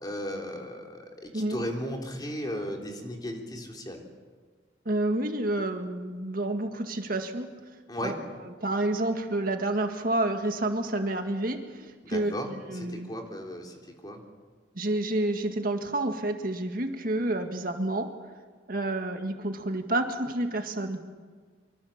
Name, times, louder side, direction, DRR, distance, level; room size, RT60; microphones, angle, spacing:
voice 1, 0.0-4.0 7.9-8.2 12.0-14.2, equal, 20° left, 1 dB, 3.4 m, -36 dB
voice 2, 4.9-7.5 8.0-8.1 8.6-11.6 12.1-13.2 14.8-18.1 18.7-21.0, right 2 dB, 50° right, 5 dB, 1.9 m, -29 dB
25.0 x 25.0 x 7.3 m, 1.5 s
head